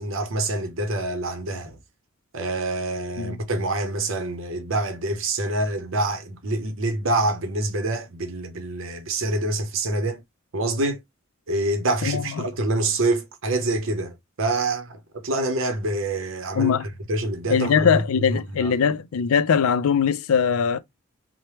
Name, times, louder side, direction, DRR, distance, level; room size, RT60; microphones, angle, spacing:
voice 1, 0.0-1.8 2.3-10.2 10.5-11.0 11.5-16.8 17.1-17.9 18.3-18.7, right 2 dB, 65° right, 0.7 m, -26 dB
voice 2, 12.0-12.4 16.5-16.9 17.5-20.8, left 7 dB, 80° left, 0.4 m, -21 dB
3.2 x 2.0 x 2.9 m
head